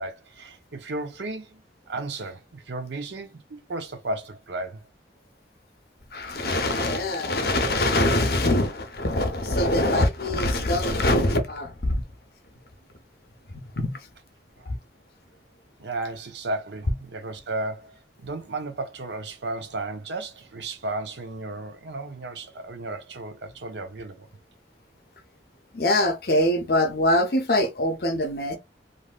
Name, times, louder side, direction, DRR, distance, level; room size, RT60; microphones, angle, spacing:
voice 1, 0.0-4.8 14.6-14.7 15.8-24.3, right 2 dB, 85° right, 0.7 m, -34 dB
voice 2, 6.1-12.0 13.5-14.1 14.6-14.8 25.7-28.6, left 1 dB, 60° left, 0.8 m, -23 dB
3.3 x 2.6 x 2.4 m
head